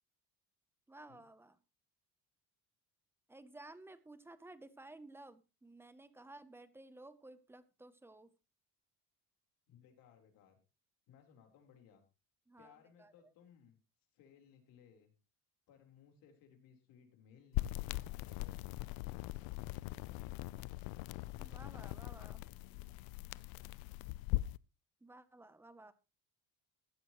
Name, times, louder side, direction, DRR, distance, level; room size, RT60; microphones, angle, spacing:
voice 1, 0.9-1.6 3.3-8.3 12.5-13.1 21.3-22.4 25.0-25.9, right 2 dB, 5° right, 14 dB, 0.7 m, -55 dB
voice 2, 9.7-10.6 11.1-12.0 12.6-13.8 14.1-15.1 15.7-18.8, left 8 dB, 70° left, 4 dB, 3.9 m, -63 dB
sound 1, 17.5-24.6, left 18 dB, 85° left, 0.5 m, -41 dB
15.5 x 12.0 x 3.0 m, 0.28 s
cardioid pair, 170°, 35 cm